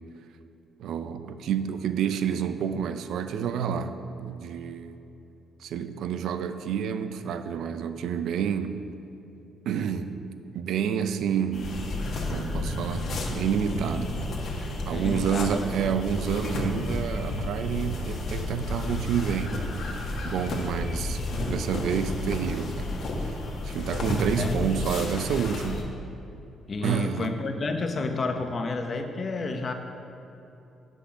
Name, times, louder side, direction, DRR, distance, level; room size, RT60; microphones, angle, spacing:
voice 1, 0.8-5.0 5.6-8.9 9.7-10.1 10.5-11.8 12.3-14.4 14.9-19.6 20.2-21.2 21.5-23.3 23.6-25.9 26.8-27.3, right 8 dB, 75° right, 10 dB, 0.5 m, -29 dB
sound 1, 11.5-25.8, left 2 dB, 60° left, 1.3 m, -31 dB
voice 2, 14.9-15.7 24.4-24.6 26.7-29.7, left 3 dB, 40° left, 5 dB, 0.8 m, -30 dB
8.0 x 6.3 x 5.7 m, 2.9 s
cardioid pair, 90°, 0 cm